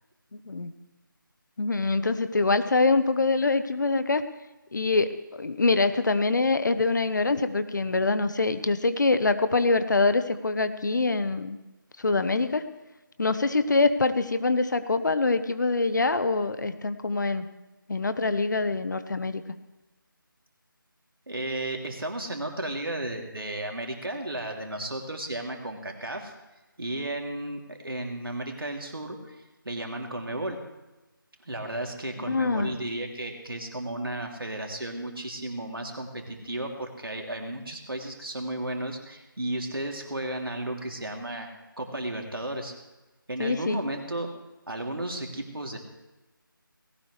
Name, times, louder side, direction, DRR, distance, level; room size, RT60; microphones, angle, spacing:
voice 1, 0.3-0.7 1.6-4.2 4.7-11.6 12.0-12.7 13.2-17.5 17.9-19.4 32.3-32.7 43.4-43.8, left 3 dB, 55° left, 11 dB, 1.1 m, -24 dB
voice 2, 21.3-26.3 26.8-29.4 29.6-30.6 31.4-41.5 41.8-42.7 43.3-44.3 44.7-45.8, right 1 dB, 80° right, 1 dB, 3.0 m, -34 dB
19.0 x 17.0 x 3.3 m, 1.1 s
figure-of-eight pair, 160°, 12 cm